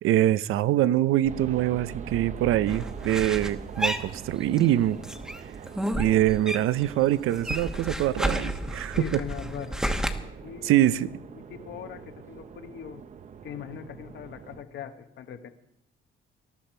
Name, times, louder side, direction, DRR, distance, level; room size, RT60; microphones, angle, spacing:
voice 1, 0.0-5.0 6.0-9.0 10.6-11.1, right 13 dB, 80° right, 0.6 m, -24 dB
sound 1, 1.2-14.6, right 6 dB, 35° right, 0.7 m, -42 dB
sound 2, 2.7-4.7 5.0-6.9 7.1-10.1, equal, 5° right, 1.0 m, -31 dB
voice 2, 9.0-9.9 10.4-10.9 11.3-13.0 13.4-15.5, left 8 dB, 60° left, 1.0 m, -40 dB
19.5 x 13.0 x 4.5 m
cardioid pair, 155°, 21 cm